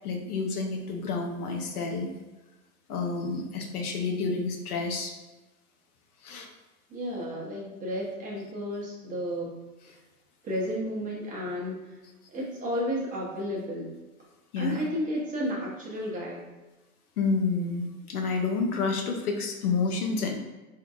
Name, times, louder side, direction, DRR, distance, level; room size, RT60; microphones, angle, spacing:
voice 1, 0.0-2.1 2.9-5.1 6.2-6.5 14.5-14.8 17.2-20.3, left 4 dB, 80° left, 3 dB, 0.7 m, -29 dB
voice 2, 6.9-9.5 10.4-11.8 12.3-13.9 14.6-16.4, equal, 20° right, -4 dB, 0.7 m, -32 dB
3.6 x 2.7 x 2.3 m, 1.1 s
hypercardioid pair, 115°, 44 cm